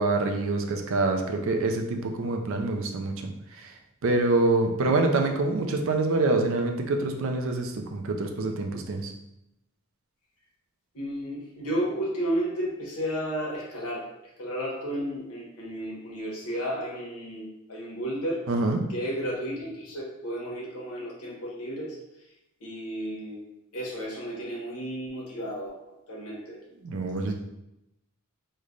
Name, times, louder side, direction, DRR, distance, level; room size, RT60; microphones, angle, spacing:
voice 1, 0.0-3.3 3.6-3.7 4.0-9.1 18.5-18.8 26.8-27.3, right 2 dB, 60° right, 4 dB, 0.4 m, -26 dB
voice 2, 10.9-14.0 14.4-18.4 18.9-22.0 22.6-23.4 23.7-25.7 26.1-26.6, equal, 90° left, -5 dB, 1.0 m, -32 dB
3.2 x 2.1 x 3.7 m, 0.86 s
head